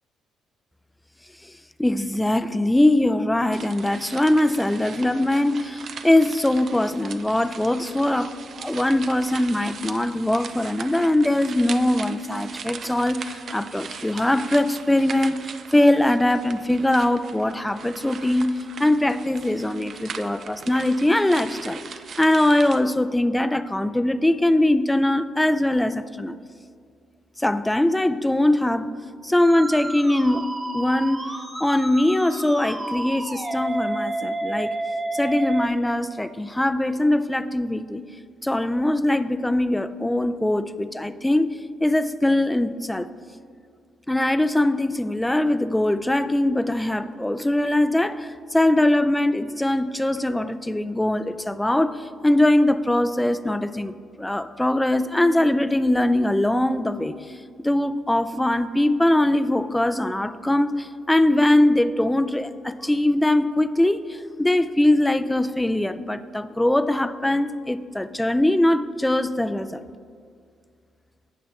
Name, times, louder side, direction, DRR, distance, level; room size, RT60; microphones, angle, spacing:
voice 1, 1.8-21.8 22.2-26.4 27.4-28.9 29.2-30.5 30.7-34.8 35.1-38.0 38.4-43.1 44.1-57.4 57.6-69.8, left 1 dB, 10° left, 12 dB, 0.4 m, -22 dB
sound 1, 3.5-22.8, right 6 dB, 55° right, 0.5 m, -39 dB
Musical instrument, 29.4-35.7, right 1 dB, 20° right, 1.1 m, -30 dB
16.0 x 5.7 x 3.2 m, 2.2 s
cardioid pair, 90°, 0 cm